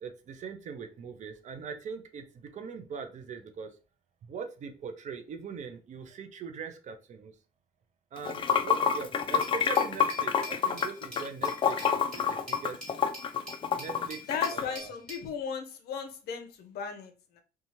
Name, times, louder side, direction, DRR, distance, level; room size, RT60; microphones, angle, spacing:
voice 1, 0.0-3.8 4.3-7.4 8.1-12.8 13.7-14.2 14.5-14.9, right 5 dB, 45° right, 7 dB, 0.5 m, -41 dB
Water / Sink (filling or washing), 8.2-14.6, left 7 dB, 30° left, 0.3 m, -27 dB
Glass, 9.4-15.3, left 1 dB, 5° left, 1.6 m, -45 dB
voice 2, 14.3-17.4, left 6 dB, 70° left, 6 dB, 0.7 m, -37 dB
2.7 x 2.3 x 2.9 m, 0.32 s
cardioid pair, 110°, 17 cm